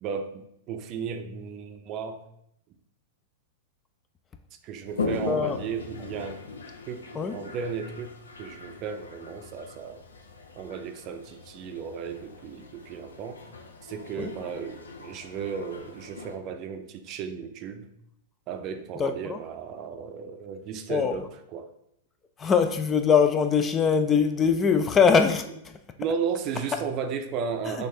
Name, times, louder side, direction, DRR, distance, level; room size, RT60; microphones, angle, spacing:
voice 1, 0.0-2.2 4.6-6.4 6.9-7.0 7.3-8.1 8.4-10.0 10.5-13.4 13.8-17.9 18.5-21.7 26.0-27.9, right 6 dB, 40° right, 7 dB, 0.5 m, -34 dB
Toilet flush, 4.8-16.4, left 4 dB, 85° left, 0.5 m, -39 dB
voice 2, 5.3-5.6 7.1-7.4 14.2-14.3 19.0-19.4 20.9-21.2 22.4-25.8 27.7-27.8, left 6 dB, 25° left, 8 dB, 0.4 m, -22 dB
6.1 x 2.5 x 2.7 m, 0.76 s
hypercardioid pair, 105°, 0 cm